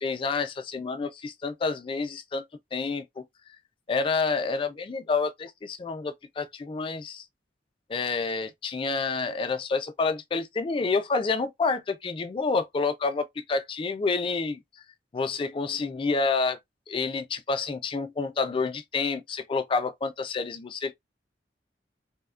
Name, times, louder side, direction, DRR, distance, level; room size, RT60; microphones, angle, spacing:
voice 1, 0.0-2.4 2.7-3.2 3.9-7.2 7.9-14.6 15.1-16.6 16.9-20.9, left 4 dB, 30° left, 0.3 m, -28 dB
3.0 x 2.1 x 2.3 m
head